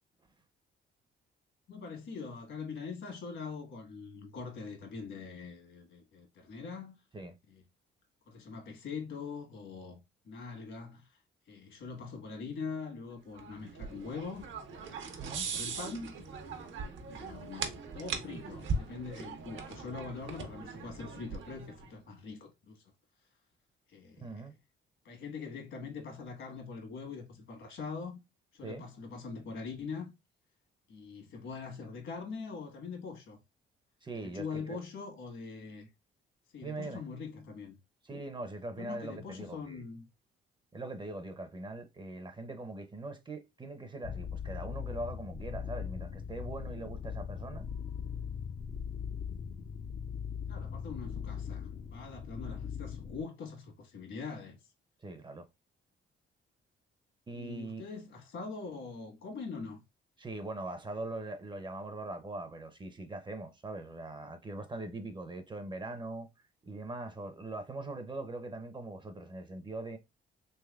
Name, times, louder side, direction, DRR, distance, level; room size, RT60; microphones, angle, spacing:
voice 1, 1.7-7.0 7.5-7.6 8.3-11.2 11.5-14.5 15.1-16.1 17.1-22.8 23.9-24.4 25.0-28.2 28.5-30.1 30.9-33.4 34.2-35.9 36.5-37.8 38.8-40.0 50.5-54.6 57.3-59.8, left 5 dB, 70° left, 1.4 m, -43 dB
sound 1, 13.3-21.9, right 4 dB, 75° right, 0.8 m, -40 dB
voice 2, 24.2-24.5 28.6-28.8 34.0-34.8 36.6-37.0 38.0-39.8 40.7-47.7 55.0-55.5 57.3-57.8 60.2-66.3 66.6-70.0, right 2 dB, 25° right, 0.5 m, -41 dB
sound 2, 44.0-53.2, left 7 dB, 40° left, 0.4 m, -40 dB
3.4 x 3.2 x 2.3 m
cardioid pair, 90°, 20 cm